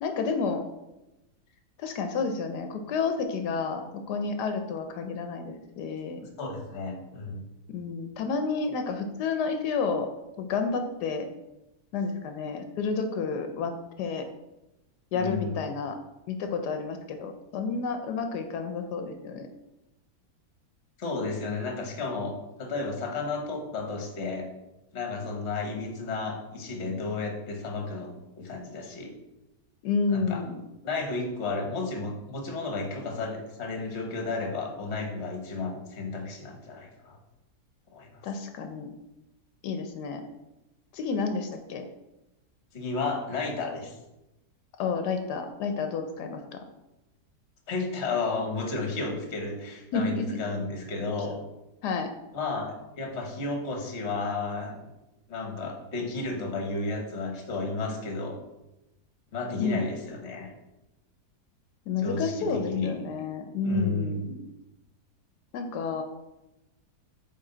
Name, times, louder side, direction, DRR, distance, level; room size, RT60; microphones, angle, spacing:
voice 1, 0.0-0.6 1.8-6.2 7.7-10.1 10.4-11.3 11.9-13.7 14.0-14.2 15.1-16.0 16.3-19.5 29.8-30.6 38.2-38.9 39.6-40.2 40.9-41.8 44.8-46.4 49.9-50.4 51.8-52.1 59.6-59.8 61.9-64.4 65.5-66.0, left 4 dB, 85° left, 6 dB, 1.2 m, -30 dB
voice 2, 6.4-7.4 15.1-15.6 21.0-24.5 24.9-29.1 30.1-30.4 30.8-37.2 37.9-38.2 42.7-44.0 47.7-51.4 52.3-54.8 55.3-58.4 59.3-60.5 62.0-62.9 63.6-64.2, left 3 dB, 45° left, 2 dB, 1.3 m, -32 dB
8.3 x 3.7 x 3.8 m, 0.97 s
omnidirectional pair, 1.7 m